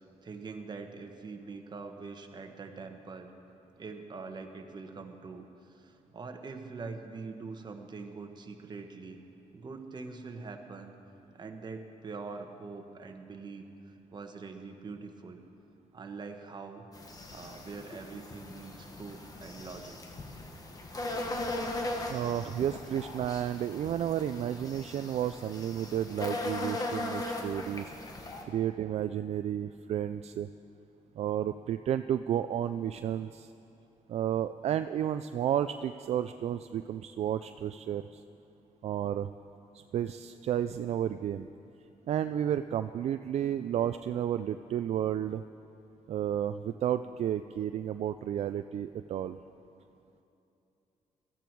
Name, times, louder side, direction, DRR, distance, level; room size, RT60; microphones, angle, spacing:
voice 1, 0.2-3.3 3.8-9.2 9.5-10.9 11.3-15.4 15.9-16.9 17.3-20.0, right 4 dB, 35° right, 5 dB, 1.3 m, -44 dB
sound 1, 16.9-28.4, left 2 dB, 30° left, 1.5 m, -38 dB
voice 2, 22.1-27.9 28.5-30.5 31.2-33.5 34.1-38.2 38.8-39.3 39.7-41.5 42.1-45.4 46.1-49.4, right 10 dB, 60° right, 10 dB, 0.4 m, -32 dB
17.0 x 13.5 x 4.6 m, 2.8 s
cardioid pair, 115°, 12 cm